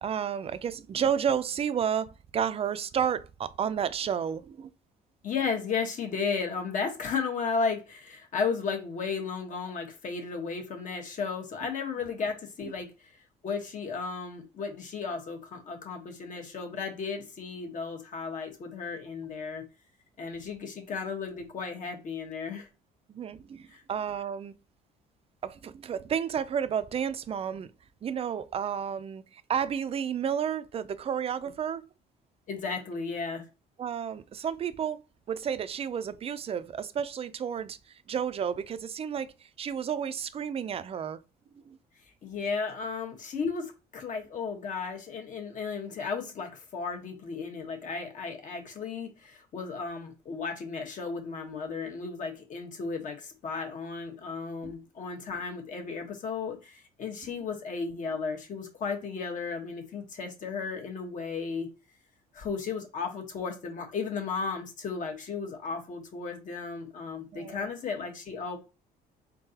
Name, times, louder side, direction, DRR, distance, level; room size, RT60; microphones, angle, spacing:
voice 1, 0.0-4.7 12.6-12.7 23.1-24.5 25.4-27.7 28.0-31.8 33.8-35.0 35.3-41.2 41.7-41.8 54.6-54.7 67.3-67.7, right 8 dB, 35° right, 0.4 m, -31 dB
voice 2, 5.2-12.9 13.4-19.7 20.2-22.7 23.7-23.8 32.5-33.4 42.2-61.7 62.3-68.6, left 5 dB, 50° left, 1.3 m, -34 dB
3.7 x 3.7 x 2.8 m
cardioid pair, 110°, 17 cm